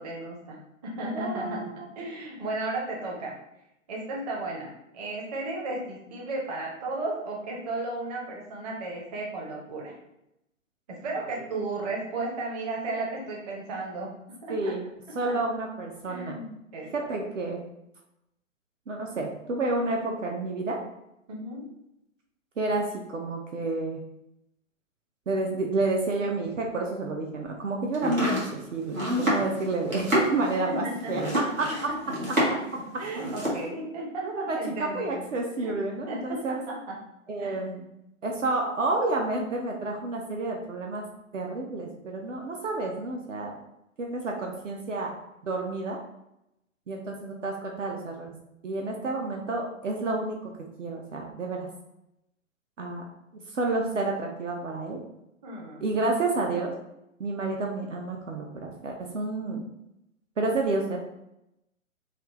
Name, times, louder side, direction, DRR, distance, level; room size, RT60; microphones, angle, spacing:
voice 1, 0.0-3.4 3.9-9.9 10.9-14.7 15.1-15.4 16.0-16.9 21.3-21.7 30.7-32.2 32.5-32.6 33.0-35.2 35.6-35.7 36.1-37.0 37.4-37.7 55.4-55.9 56.4-56.5, right 2 dB, 30° right, -2 dB, 0.8 m, -34 dB
voice 2, 1.1-1.7 14.5-14.9 15.2-16.4 16.9-17.6 18.9-20.8 22.6-24.0 25.3-31.2 31.8-31.9 34.2-36.6 37.3-37.8 38.2-41.0 41.3-43.6 44.0-45.1 45.4-46.0 46.9-48.3 48.6-50.5 50.8-51.7 52.8-53.0 53.5-55.0 55.8-56.7 57.2-59.6 60.4-61.0, right 2 dB, 65° right, 1 dB, 0.6 m, -30 dB
Domestic sounds home sounds, 27.9-32.7 33.0-33.6, equal, 85° right, 1.5 m, -28 dB
3.2 x 2.4 x 3.0 m, 0.84 s
figure-of-eight pair, 120°, 40 cm